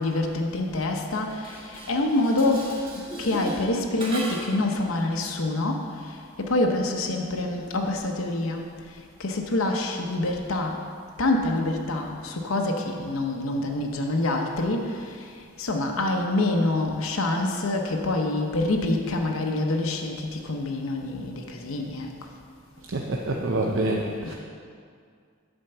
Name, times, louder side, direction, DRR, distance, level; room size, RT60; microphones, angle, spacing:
voice 1, 0.0-1.4 1.9-2.7 3.2-5.8 6.5-8.6 9.2-10.8 11.2-14.9 15.6-20.2 20.4-22.1 24.2-24.3, left 2 dB, 80° left, 2 dB, 0.8 m, -26 dB
Dishes pots and pans, 1.3-4.7, right 1 dB, 25° right, 1.6 m, -37 dB
voice 2, 22.9-24.3, right 2 dB, 65° right, 0 dB, 0.6 m, -26 dB
8.8 x 4.4 x 6.8 m, 2.2 s
head